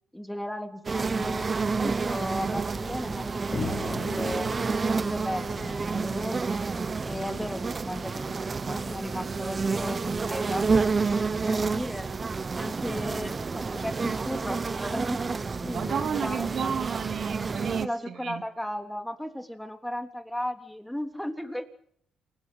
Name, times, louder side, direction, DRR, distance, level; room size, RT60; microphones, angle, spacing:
voice 1, 0.1-4.5 4.9-6.6 7.0-12.1 12.6-15.2 15.6-16.7 17.8-21.6, equal, 5° left, 5 dB, 3.4 m, -36 dB
sound 1, 0.8-17.8, right 4 dB, 30° right, 1.0 m, -29 dB
sound 2, 3.5-8.2, left 4 dB, 40° left, 4.5 m, -40 dB
voice 2, 15.7-18.4, right 7 dB, 60° right, 7 dB, 2.7 m, -31 dB
28.5 x 16.0 x 9.2 m, 0.63 s
cardioid pair, 90°, 0 cm